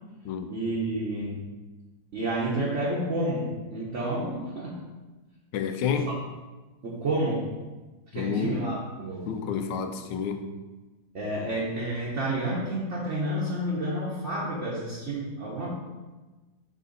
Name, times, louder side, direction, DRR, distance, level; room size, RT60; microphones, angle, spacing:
voice 1, 0.5-1.4 2.1-4.7 6.1-6.2 6.8-7.5 8.1-9.3 11.1-15.7, right 1 dB, 50° right, -5 dB, 1.1 m, -30 dB
voice 2, 5.5-6.2 8.1-8.6 9.2-10.5, left 6 dB, 80° left, 7 dB, 1.3 m, -29 dB
6.4 x 4.1 x 3.9 m, 1.2 s
omnidirectional pair, 1.9 m